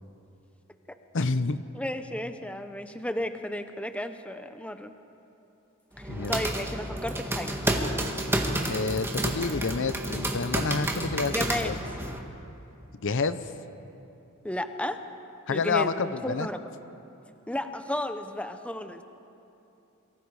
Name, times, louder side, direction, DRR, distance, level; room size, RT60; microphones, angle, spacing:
voice 1, 1.1-1.6 6.1-6.4 8.3-11.8 13.0-13.5 15.5-16.5, left 4 dB, 60° left, 12 dB, 0.7 m, -29 dB
voice 2, 1.7-4.9 6.3-7.5 11.3-11.7 14.4-15.0 15.5-16.7 17.5-19.0, left 1 dB, 5° left, 8 dB, 0.8 m, -33 dB
sound 1, 6.0-12.2, right 1 dB, 10° right, 1.6 m, -30 dB
27.5 x 23.5 x 4.8 m, 2.9 s
head